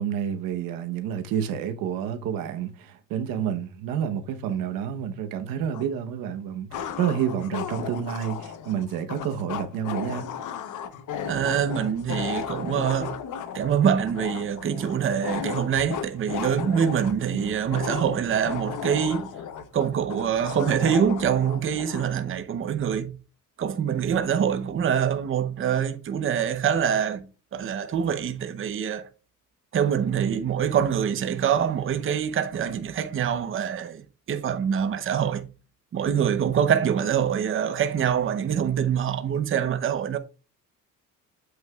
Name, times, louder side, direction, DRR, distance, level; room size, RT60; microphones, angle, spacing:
voice 1, 0.0-10.3, right 8 dB, 90° right, 1.0 m, -29 dB
sound 1, 5.7-5.8 6.7-22.1, left 8 dB, 65° left, 0.9 m, -35 dB
voice 2, 11.2-13.2 13.5-19.3 19.7-23.2 23.6-27.3 27.5-29.1 29.7-35.5 35.9-40.2, right 8 dB, 40° right, 0.7 m, -25 dB
8.0 x 7.7 x 2.3 m
cardioid pair, 115°, 33 cm